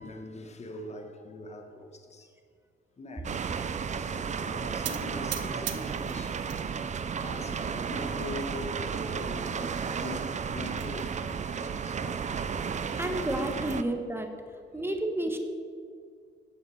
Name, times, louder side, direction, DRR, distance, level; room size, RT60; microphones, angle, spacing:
voice 1, 0.0-2.3 3.0-3.5 4.1-6.4 7.2-12.2 13.6-13.8 14.8-14.9, left 2 dB, 35° left, 1.4 m, -42 dB
sound 1, 3.2-13.8, right 6 dB, 35° right, 0.6 m, -33 dB
sound 2, 4.8-6.6 7.0-7.6 8.2-8.3 8.6-8.7 9.1-9.2 10.3-10.9, right 11 dB, 75° right, 0.8 m, -39 dB
voice 2, 13.0-14.3 14.7-15.4, right 1 dB, 10° right, 1.3 m, -30 dB
9.4 x 7.2 x 6.3 m
cardioid pair, 90°, 20 cm